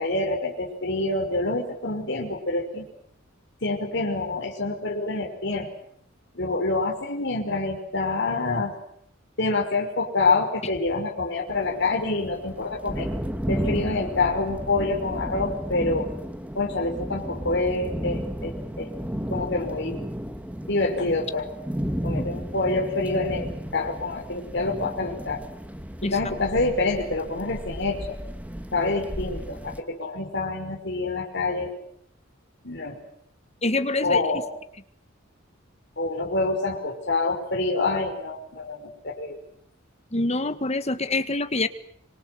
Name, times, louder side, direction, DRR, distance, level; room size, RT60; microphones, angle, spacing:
voice 1, 0.0-2.9 3.6-5.7 6.4-8.8 9.4-13.1 13.5-16.1 16.5-18.9 19.3-20.1 20.6-21.5 22.0-25.4 26.0-28.2 28.7-31.7 32.6-33.0 34.0-34.5 36.0-39.4, left 3 dB, 60° left, 2 dB, 5.3 m, -26 dB
sound 1, 11.5-29.8, equal, 5° right, 2.0 m, -34 dB
voice 2, 33.6-34.2 40.1-41.7, left 2 dB, 30° left, 11 dB, 1.7 m, -25 dB
26.0 x 25.0 x 7.8 m, 0.68 s
head